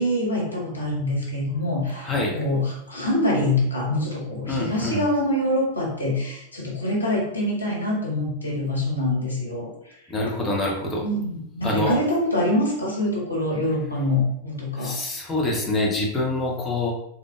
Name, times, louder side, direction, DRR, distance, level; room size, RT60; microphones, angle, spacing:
voice 1, 0.0-10.2 11.0-15.0, left 1 dB, 80° left, -2 dB, 1.1 m, -25 dB
voice 2, 2.0-2.4 4.5-5.0 10.1-11.1 11.6-12.0 14.8-16.9, left 2 dB, 15° left, -2 dB, 0.8 m, -25 dB
3.6 x 3.4 x 2.4 m, 0.76 s
figure-of-eight pair, 90°, 0 cm